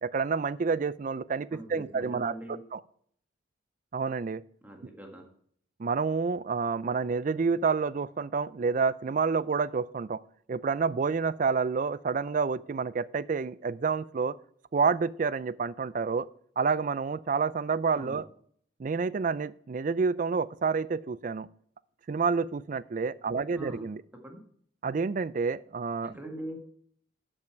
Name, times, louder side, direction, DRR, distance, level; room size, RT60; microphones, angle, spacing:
voice 1, 0.0-2.3 2.7-2.8 3.9-4.4 5.8-10.2 10.5-14.3 14.7-16.3 16.6-18.3 18.8-21.5 22.1-24.0 24.8-26.2, right 5 dB, 40° right, 18 dB, 0.3 m, -29 dB
voice 2, 1.5-2.6 4.6-5.3 17.9-18.2 23.5-23.9 24.2-24.4 26.0-26.6, right 1 dB, 10° right, 2 dB, 1.5 m, -42 dB
12.0 x 5.5 x 4.6 m, 0.62 s
head